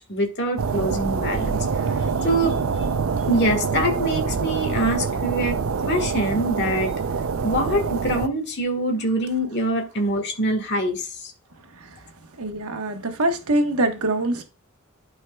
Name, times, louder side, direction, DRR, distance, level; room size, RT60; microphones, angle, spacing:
voice 1, 0.0-1.7 2.2-2.6 3.3-5.6 5.9-6.9 7.4-11.3, right 1 dB, 50° left, 1.6 m, -24 dB
sound 1, 0.6-8.3, right 5 dB, 70° right, 0.5 m, -25 dB
voice 2, 12.4-14.4, right 1 dB, 90° right, 1.2 m, -23 dB
12.5 x 4.7 x 2.3 m
head